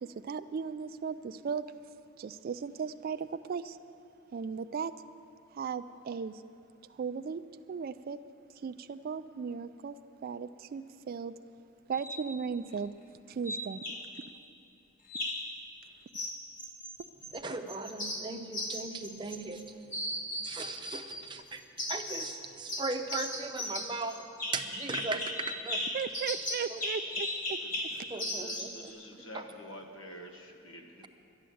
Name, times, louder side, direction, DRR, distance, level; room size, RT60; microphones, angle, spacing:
voice 1, 0.0-1.7 2.2-3.8 4.3-4.9 5.5-6.4 6.9-7.4 7.7-8.2 8.6-10.0 10.2-11.3 11.9-12.9 13.3-13.8 25.9-28.1, right 6 dB, 45° right, 0.3 m, -36 dB
sound 1, 11.9-12.3 13.5-14.3 15.1-15.5 16.1-17.4 17.7-19.6 19.9-21.3 21.8-22.4 22.7-28.8, left 1 dB, 40° left, 1.5 m, -37 dB
voice 2, 17.3-24.2 24.5-25.9 26.7-26.8 28.1-28.9 29.3-29.4, right 3 dB, 25° right, 0.7 m, -38 dB
voice 3, 27.6-31.1, equal, 75° left, 1.5 m, -48 dB
11.5 x 11.0 x 7.7 m
head